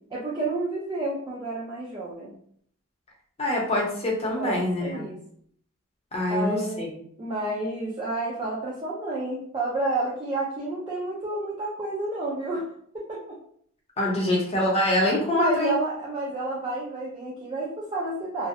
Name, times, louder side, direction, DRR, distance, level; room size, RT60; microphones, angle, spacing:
voice 1, 0.1-2.3 4.4-5.2 6.3-6.8 7.2-12.7 13.1-13.4 14.5-14.6 15.2-18.5, right 2 dB, 20° right, -6 dB, 0.4 m, -30 dB
voice 2, 3.4-5.0 6.1-6.9 14.0-15.8, left 1 dB, 25° left, -2 dB, 0.6 m, -25 dB
2.6 x 2.0 x 2.5 m, 0.63 s
head